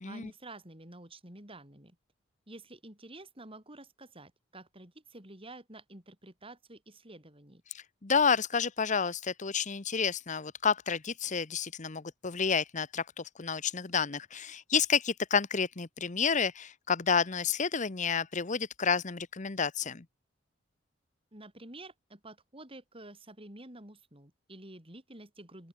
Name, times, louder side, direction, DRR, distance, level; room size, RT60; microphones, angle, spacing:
voice 1, 0.1-2.0 2.5-7.6 21.3-25.7, right 2 dB, 30° right, 6.7 m, -50 dB
voice 2, 7.7-20.0, left 6 dB, 40° left, 0.9 m, -30 dB
open air
head